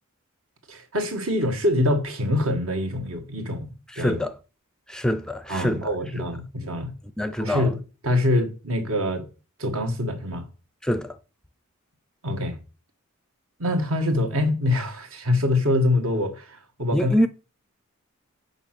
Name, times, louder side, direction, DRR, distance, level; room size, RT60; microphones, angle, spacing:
voice 1, 0.7-4.2 5.5-6.9 7.4-7.8 8.0-9.2 9.6-10.4 12.2-12.6 13.6-17.1, left 1 dB, 75° right, 1.7 m, -25 dB
voice 2, 3.9-4.4 4.9-5.9 7.2-7.7 10.8-11.2 16.9-17.3, equal, 5° left, 0.4 m, -25 dB
7.0 x 5.4 x 5.9 m
head